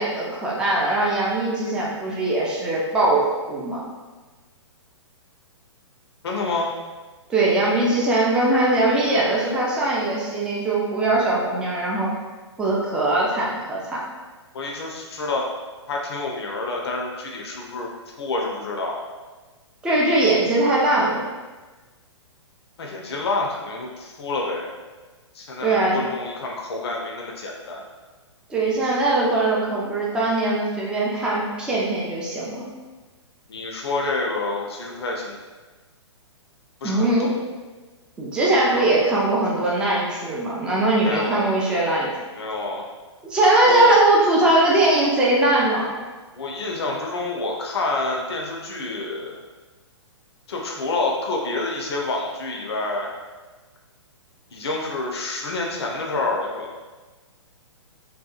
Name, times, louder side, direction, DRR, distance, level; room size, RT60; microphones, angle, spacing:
voice 1, 0.0-3.8 7.3-12.1 12.6-14.0 19.8-21.2 25.6-26.0 28.5-32.7 36.8-37.3 38.2-42.1 43.2-45.9, right 2 dB, 5° right, -5 dB, 0.3 m, -21 dB
voice 2, 6.2-6.7 14.5-15.5 15.9-17.9 18.2-19.0 22.8-24.7 25.3-27.8 33.5-35.4 36.8-37.3 38.7-38.9 41.0-41.5 42.3-42.9 43.6-44.0 46.3-49.4 50.5-53.1 54.5-56.8, left 3 dB, 60° left, 0 dB, 0.4 m, -28 dB
2.7 x 2.2 x 2.3 m, 1.3 s
figure-of-eight pair, 120°, 15 cm